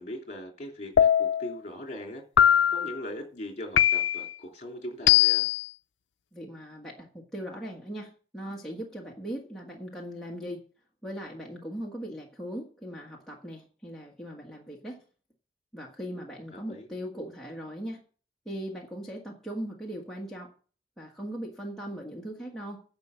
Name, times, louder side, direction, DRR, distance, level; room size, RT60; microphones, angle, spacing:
voice 1, 0.0-2.2 2.7-5.5 16.5-16.9, left 1 dB, 40° left, 2 dB, 3.0 m, -40 dB
sound 1, 1.0-1.5 2.4-2.9 3.8-4.3 5.1-5.6, left 10 dB, 90° left, 0.4 m, -21 dB
voice 2, 6.3-10.6 11.0-15.0 15.7-18.0 18.4-20.5 21.0-22.8, equal, ahead, -4 dB, 1.5 m, -39 dB
10.5 x 6.2 x 6.9 m, 0.40 s
head